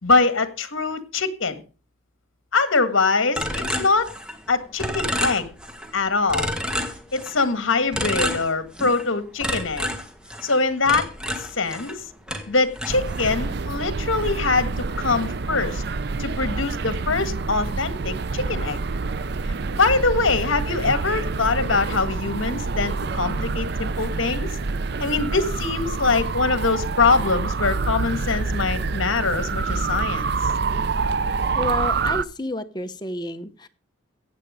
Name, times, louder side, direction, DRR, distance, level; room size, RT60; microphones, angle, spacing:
voice 1, 0.0-1.6 2.5-4.1 4.5-5.5 5.9-6.5 7.1-9.9 10.4-11.1 11.4-11.9 12.5-15.8 16.2-18.8 19.7-24.6 25.0-30.4, left 4 dB, 70° left, 11 dB, 1.7 m, -23 dB
sound 1, 3.4-4.5 4.8-5.9 6.3-7.5 7.9-9.1 9.4-12.0 12.3-13.5, equal, 5° right, 1.5 m, -29 dB
sound 2, 12.9-32.2, right 4 dB, 50° right, 0.5 m, -27 dB
voice 2, 31.6-33.7, left 2 dB, 20° left, 8 dB, 1.0 m, -30 dB
16.0 x 8.7 x 5.0 m, 0.36 s
head